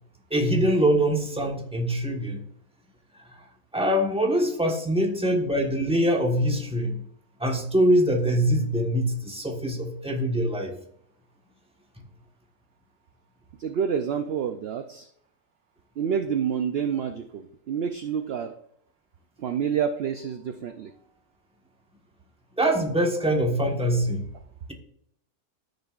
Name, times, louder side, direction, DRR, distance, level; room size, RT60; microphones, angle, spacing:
voice 1, 0.3-2.4 3.3-3.4 3.7-7.0 7.4-10.8 22.6-24.2, equal, 5° right, 1 dB, 1.1 m, -23 dB
voice 2, 13.6-15.1 16.0-18.5 19.4-20.9, right 7 dB, 65° right, 8 dB, 0.6 m, -28 dB
14.0 x 6.6 x 2.4 m, 0.72 s
omnidirectional pair, 1.6 m